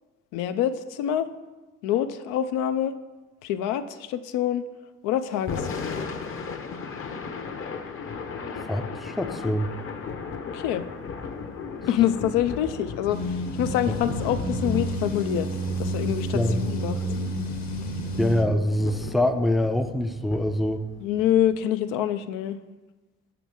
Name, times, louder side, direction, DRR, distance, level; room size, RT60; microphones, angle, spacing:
voice 1, 0.3-1.3 1.8-2.9 3.4-4.6 5.0-6.0 10.5-10.8 11.9-15.5 15.8-16.4 16.7-17.0 21.0-22.6, left 11 dB, 85° left, 11 dB, 0.5 m, -26 dB
Thunder / Rain, 5.3-21.6, left 5 dB, 45° left, 0.8 m, -37 dB
voice 2, 8.5-9.7 13.9-14.0 16.3-16.7 18.2-20.8, left 1 dB, ahead, 8 dB, 0.4 m, -25 dB
sound 1, 13.1-18.5, right 1 dB, 65° left, 1.4 m, -30 dB
6.1 x 5.8 x 3.6 m, 1.2 s
supercardioid pair, 85°, 31 cm